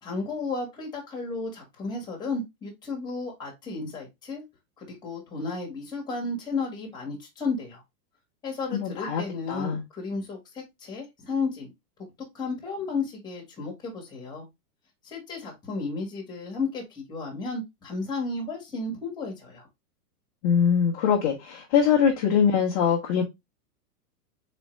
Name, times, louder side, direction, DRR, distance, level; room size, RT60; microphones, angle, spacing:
voice 1, 0.0-4.4 4.8-7.8 8.4-11.7 12.3-14.5 15.0-19.7, left 3 dB, 10° left, 1.2 m, -33 dB
voice 2, 8.7-9.8 20.4-23.2, left 7 dB, 25° left, 0.6 m, -23 dB
4.1 x 3.6 x 3.1 m
hypercardioid pair, 160°, 47 cm